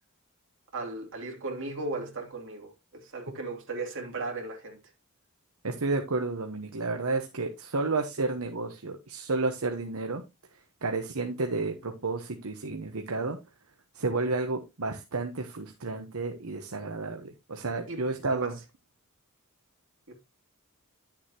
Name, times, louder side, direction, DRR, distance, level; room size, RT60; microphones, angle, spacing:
voice 1, 0.7-4.8 17.9-18.0 18.3-18.5 20.1-20.2, right 3 dB, 60° right, 3.0 m, -36 dB
voice 2, 5.6-10.2 10.8-13.4 13.9-18.5, right 3 dB, 75° right, 1.1 m, -31 dB
11.0 x 7.2 x 2.9 m
head